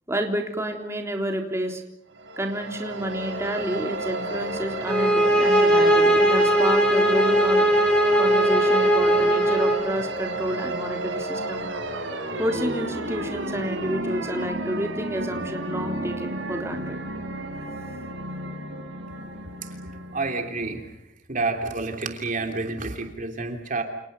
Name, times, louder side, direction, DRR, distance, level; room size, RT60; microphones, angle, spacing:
voice 1, 0.1-1.8 2.4-7.7 8.1-11.7 12.4-17.0, right 1 dB, 15° right, 2 dB, 3.6 m, -29 dB
sound 1, 2.1-20.8, right 2 dB, 80° right, 6.8 m, -32 dB
sound 2, 4.8-9.8, right 1 dB, 5° left, 6.5 m, -19 dB
voice 2, 20.1-21.0 21.3-23.8, right 3 dB, 45° right, 4 dB, 3.2 m, -29 dB
29.5 x 29.5 x 5.6 m, 0.77 s
head